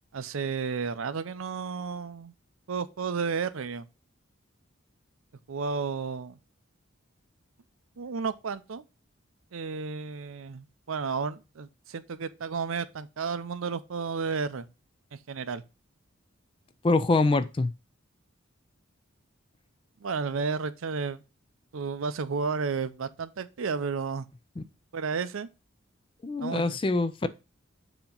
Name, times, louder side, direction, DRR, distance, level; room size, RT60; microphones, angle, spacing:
voice 1, 0.1-2.3 2.7-3.8 5.5-6.4 8.0-8.8 9.5-14.7 15.3-15.6 20.0-21.2 21.7-24.2 24.9-25.5 26.4-26.8, right 5 dB, 75° right, 0.5 m, -32 dB
voice 2, 16.8-17.7 24.6-24.7 26.2-27.3, left 3 dB, 25° left, 0.4 m, -24 dB
7.1 x 2.9 x 5.1 m
head